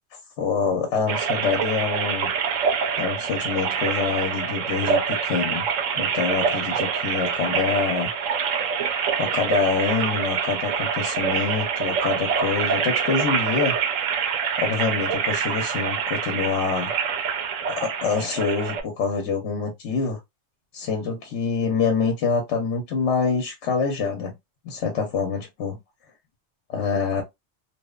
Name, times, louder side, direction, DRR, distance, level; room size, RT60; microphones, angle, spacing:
voice 1, 0.4-2.3 3.0-5.7 6.0-8.1 9.2-13.7 14.6-16.9 17.7-20.2 20.7-24.3 24.6-25.8 26.7-27.2, left 5 dB, 70° left, 0.9 m, -25 dB
sound 1, 1.1-18.8, right 6 dB, 85° right, 1.0 m, -26 dB
2.8 x 2.1 x 2.2 m
omnidirectional pair, 1.3 m